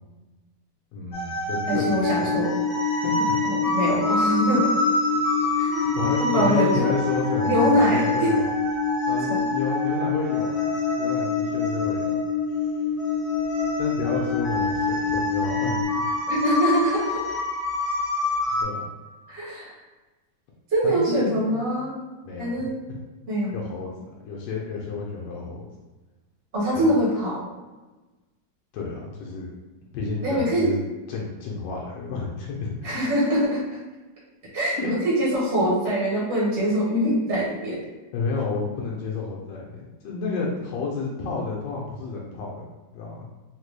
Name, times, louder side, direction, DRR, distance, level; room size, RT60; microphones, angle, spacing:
voice 1, 0.9-2.3 3.0-3.4 5.9-8.5 9.1-12.2 13.8-15.8 18.6-18.9 20.8-21.7 22.2-23.0 23.5-23.9 24.2-25.6 26.7-26.9 28.7-29.5 29.9-30.8 31.1-32.9 34.8-34.9 38.1-42.7 42.9-43.2, left 4 dB, 80° left, -3 dB, 1.3 m, -31 dB
sound 1, 1.1-18.6, left 1 dB, 20° left, 1.2 m, -28 dB
voice 2, 1.7-2.5 3.4-4.7 5.6-5.9 6.2-6.9 7.4-8.3 9.3-9.4 16.3-17.2 19.3-19.7 20.7-22.0 22.4-22.7 23.3-23.5 26.5-27.4 30.2-30.7 32.8-33.6 34.5-37.8, equal, 45° right, -7 dB, 1.1 m, -23 dB
sound 2, 1.7-15.8, left 5 dB, 80° right, 1.4 m, -27 dB
3.8 x 2.1 x 3.1 m, 1.2 s
omnidirectional pair, 1.9 m